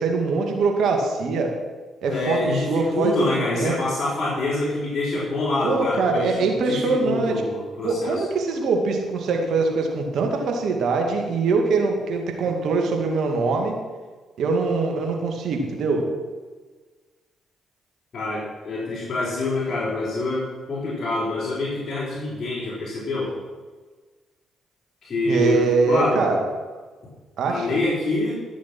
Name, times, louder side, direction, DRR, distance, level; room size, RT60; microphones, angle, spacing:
voice 1, 0.0-1.5 2.0-3.7 5.6-7.4 7.8-13.7 14.4-16.0 25.3-26.4 27.4-27.7, right 4 dB, 65° right, 3 dB, 2.2 m, -23 dB
voice 2, 2.0-8.2 18.1-23.3 25.0-26.2 27.5-28.3, left 2 dB, 50° left, -8 dB, 4.5 m, -26 dB
13.0 x 7.3 x 6.1 m, 1.4 s
hypercardioid pair, 50°, 0 cm